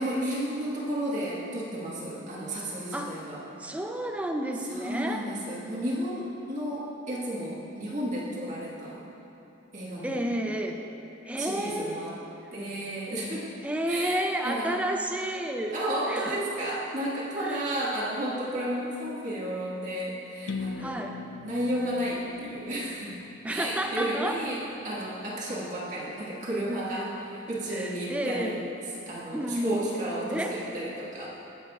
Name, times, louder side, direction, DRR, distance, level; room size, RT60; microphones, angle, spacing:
voice 1, 0.0-3.4 4.7-9.0 9.7-10.2 11.3-12.2 12.5-13.5 13.9-14.8 15.7-21.1 21.4-23.1 23.5-28.6 29.0-31.3, right 1 dB, 40° right, -7 dB, 1.6 m, -32 dB
voice 2, 2.9-3.2 3.6-5.3 10.0-10.8 11.2-12.1 13.6-15.8 16.1-16.4 17.4-17.6 20.8-21.2 23.4-24.4 27.0-27.1 27.7-28.7 29.3-29.8 30.3-30.6, right 1 dB, 5° right, 3 dB, 0.5 m, -31 dB
sound 1, 20.5-24.3, left 4 dB, 65° left, 0.4 m, -40 dB
18.0 x 7.2 x 2.4 m, 2.8 s
head